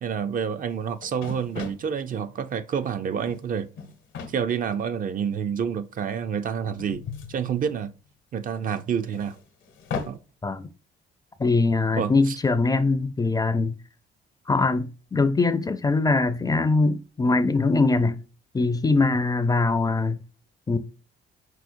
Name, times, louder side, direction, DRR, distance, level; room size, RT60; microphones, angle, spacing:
voice 1, 0.0-3.7 4.3-7.0 7.3-7.9 8.3-9.4 10.1-10.2 12.0-12.4 19.0-19.1, right 7 dB, 45° right, 0.4 m, -28 dB
sound 1, 0.7-0.8 1.0-1.9 3.0-3.4 3.7-4.4 5.2-5.3 6.8-8.1 9.1-10.2, left 5 dB, 75° left, 0.9 m, -36 dB
voice 2, 11.4-13.8 14.5-18.2 18.5-20.2 20.7-20.8, left 3 dB, 20° left, 0.4 m, -22 dB
4.8 x 4.2 x 2.6 m
cardioid pair, 90°, 20 cm